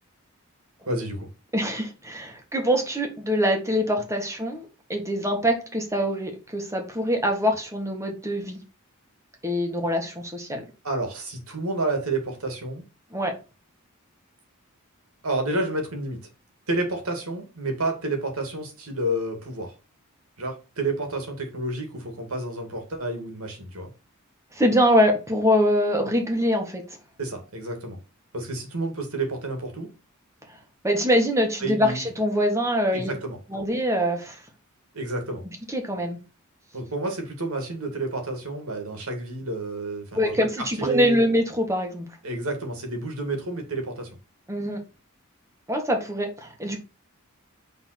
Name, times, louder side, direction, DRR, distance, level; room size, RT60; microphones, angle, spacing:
voice 1, 0.8-1.3 10.8-12.8 15.2-16.2 16.7-19.7 20.4-23.9 27.2-28.0 28.3-29.9 31.6-32.0 32.9-33.4 34.9-35.4 36.7-41.2 42.2-44.1, right 2 dB, 80° right, 2.4 m, -30 dB
voice 2, 1.5-8.6 9.4-10.6 13.1-13.3 24.5-26.8 30.8-33.1 33.5-34.4 35.7-36.2 40.1-42.1 44.5-44.8 45.7-46.8, equal, 15° right, 1.7 m, -24 dB
5.7 x 4.0 x 6.0 m
head